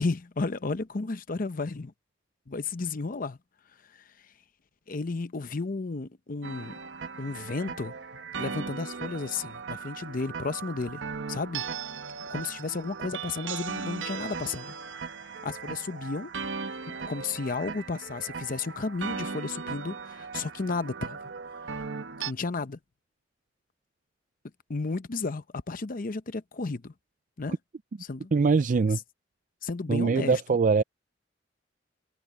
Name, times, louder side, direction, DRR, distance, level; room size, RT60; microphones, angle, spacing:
voice 1, 0.0-1.9 2.5-3.4 3.9-4.0 4.9-6.8 7.2-7.9 8.3-11.0 11.3-11.6 12.3-14.7 15.4-16.3 16.7-21.3 22.3-22.8 24.7-26.9 27.4-27.6 28.0-28.3 29.6-30.4, left 3 dB, 50° left, 0.7 m, -33 dB
sound 1, 6.4-22.3, right 5 dB, 85° right, 1.0 m, -38 dB
voice 2, 28.3-29.0 29.9-30.8, right 4 dB, 45° right, 0.4 m, -22 dB
head